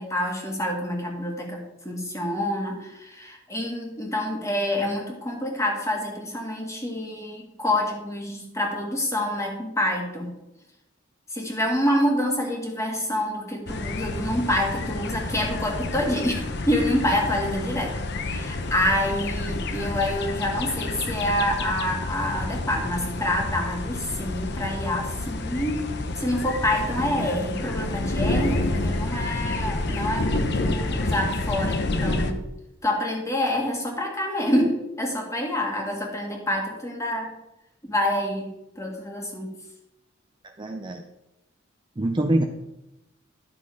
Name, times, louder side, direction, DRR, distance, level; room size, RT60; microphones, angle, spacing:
voice 1, 0.0-10.3 11.3-17.9 18.3-32.4 32.8-37.3 37.8-38.5 38.8-39.5, left 1 dB, 15° left, 0 dB, 2.0 m, -27 dB
sound 1, 13.7-32.3, left 2 dB, 60° left, 0.8 m, -29 dB
voice 2, 40.4-41.0 42.0-42.4, right 1 dB, 25° right, 4 dB, 0.6 m, -25 dB
11.5 x 6.2 x 4.9 m, 0.90 s
head